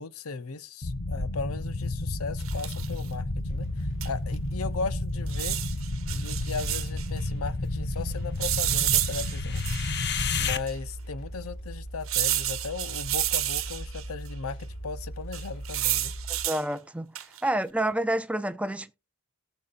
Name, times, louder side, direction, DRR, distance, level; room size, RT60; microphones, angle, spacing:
voice 1, 0.0-5.6 6.1-9.6 10.3-16.1, left 4 dB, 80° left, 0.7 m, -37 dB
sound 1, 0.8-10.6, left 3 dB, 50° left, 0.8 m, -31 dB
sound 2, 2.4-3.0 4.0-4.1 4.3-4.4 5.3-7.1 8.4-10.0 10.7-10.8 12.1-14.0 15.3-16.6 17.1-17.5, right 14 dB, 65° right, 1.0 m, -30 dB
sound 3, 3.3-16.4, right 1 dB, 35° left, 7.7 m, -39 dB
voice 2, 16.3-17.2 17.4-18.9, right 1 dB, 5° right, 0.4 m, -28 dB
18.0 x 7.1 x 2.5 m
head